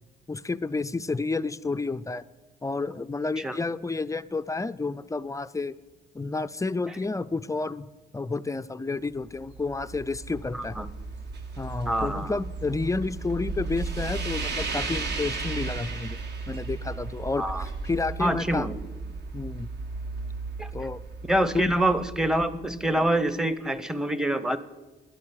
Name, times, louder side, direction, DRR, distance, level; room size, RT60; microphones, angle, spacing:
voice 1, 0.3-2.2 2.6-5.7 6.1-7.9 8.1-10.8 11.6-16.2 16.5-18.7 19.3-19.7 20.7-21.0 21.5-21.8, left 3 dB, 15° left, 13 dB, 0.4 m, -30 dB
sound 1, 9.1-23.3, right 3 dB, 60° right, 1.5 m, -35 dB
voice 2, 10.5-10.9 11.9-12.4 17.4-17.6 18.2-18.7 20.6-20.7 21.3-24.6, right 1 dB, 5° right, 13 dB, 0.8 m, -26 dB
11.0 x 8.5 x 8.8 m, 1.2 s
cardioid pair, 90°, 20 cm